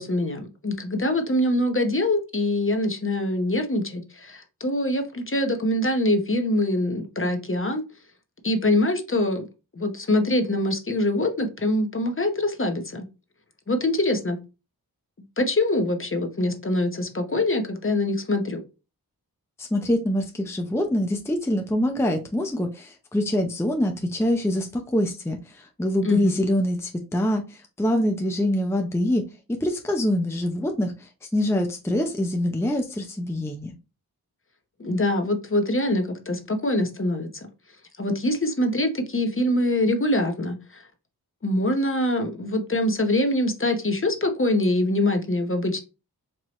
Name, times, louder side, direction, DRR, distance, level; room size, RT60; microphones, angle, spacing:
voice 1, 0.0-7.8 8.4-9.4 9.8-13.1 13.7-14.4 15.4-18.6 26.0-26.4 34.8-37.5 38.0-40.8 41.4-45.8, left 1 dB, 35° left, 6 dB, 0.9 m, -24 dB
voice 2, 19.6-29.2 29.5-33.8, left 1 dB, 5° left, 4 dB, 0.6 m, -25 dB
4.6 x 2.8 x 3.0 m, 0.29 s
wide cardioid pair, 60°, 38 cm